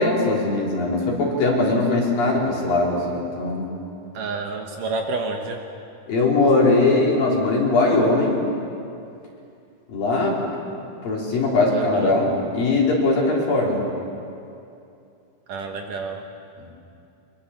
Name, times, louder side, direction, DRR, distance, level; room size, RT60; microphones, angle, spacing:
voice 1, 0.0-3.7 6.1-8.4 9.9-10.4 11.0-13.8, left 2 dB, 60° left, -3 dB, 5.3 m, -20 dB
voice 2, 4.1-5.6 11.7-12.2 15.5-16.2, right 3 dB, 65° right, 3 dB, 2.5 m, -29 dB
24.0 x 23.0 x 7.1 m, 2.6 s
omnidirectional pair, 4.6 m